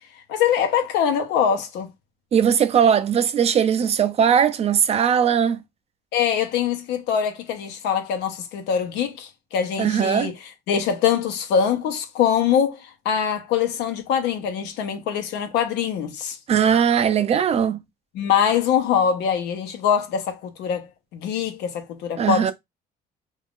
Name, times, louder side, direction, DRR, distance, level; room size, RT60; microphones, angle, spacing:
voice 1, 0.3-1.9 6.1-10.3 10.7-16.4 18.1-22.5, left 8 dB, 85° left, 0.8 m, -23 dB
voice 2, 2.3-5.6 9.8-10.3 16.5-17.8 22.2-22.5, right 8 dB, 40° right, 0.4 m, -19 dB
2.5 x 2.4 x 3.5 m
cardioid pair, 110°, 17 cm